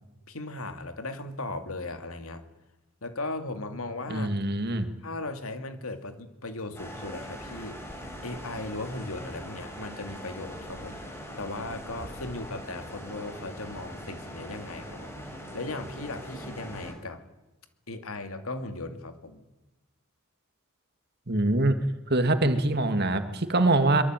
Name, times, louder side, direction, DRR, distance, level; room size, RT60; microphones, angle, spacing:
voice 1, 0.3-2.4 3.0-4.4 5.0-7.8 8.2-11.0 11.4-17.2 17.9-19.4, left 2 dB, 80° left, 8 dB, 2.6 m, -37 dB
voice 2, 4.1-4.9 21.3-21.8 22.1-24.0, right 2 dB, 50° right, 8 dB, 2.2 m, -24 dB
sound 1, 6.7-16.9, equal, 10° left, 4.7 m, -41 dB
23.5 x 23.0 x 9.2 m, 1.0 s
head